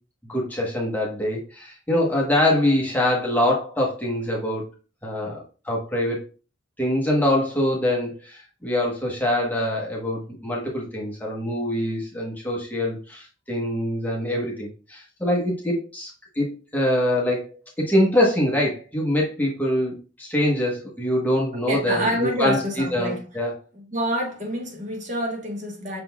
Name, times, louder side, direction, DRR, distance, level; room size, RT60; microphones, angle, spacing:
voice 1, 0.2-4.6 5.0-6.2 6.8-17.5 17.8-23.5, left 1 dB, 10° left, 0.9 m, -24 dB
voice 2, 21.7-23.3 23.7-26.0, equal, 40° right, 1.2 m, -27 dB
5.8 x 3.7 x 2.2 m
head